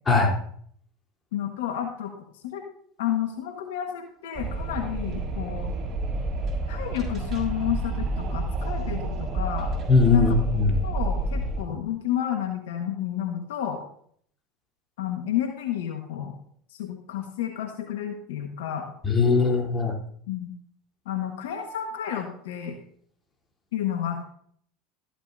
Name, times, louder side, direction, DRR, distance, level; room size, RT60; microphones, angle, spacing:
voice 1, 1.3-2.6 3.0-5.7 6.7-9.7 10.1-10.4 10.8-13.8 15.0-16.3 16.7-18.9 20.3-20.5 21.0-22.8 23.7-24.2, left 10 dB, 75° left, 4 dB, 1.4 m, -31 dB
Wind, 4.3-11.6, right 2 dB, 35° right, 4.3 m, -29 dB
voice 2, 9.9-10.8 11.7-11.8 19.0-19.9, left 4 dB, 25° left, 0 dB, 3.5 m, -20 dB
13.5 x 12.0 x 2.7 m, 0.63 s
hypercardioid pair, 85°, 0 cm